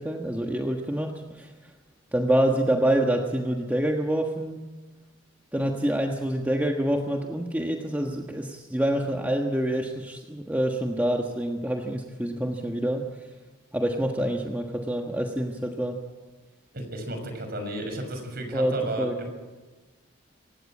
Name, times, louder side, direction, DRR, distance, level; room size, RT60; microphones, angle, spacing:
voice 1, 0.0-1.5 2.1-4.6 5.5-13.0 13.7-16.0 18.5-19.2, right 1 dB, 10° right, 2 dB, 1.4 m, -26 dB
voice 2, 16.7-19.3, right 1 dB, 50° right, 6 dB, 6.0 m, -33 dB
26.5 x 16.0 x 8.7 m, 1.3 s
head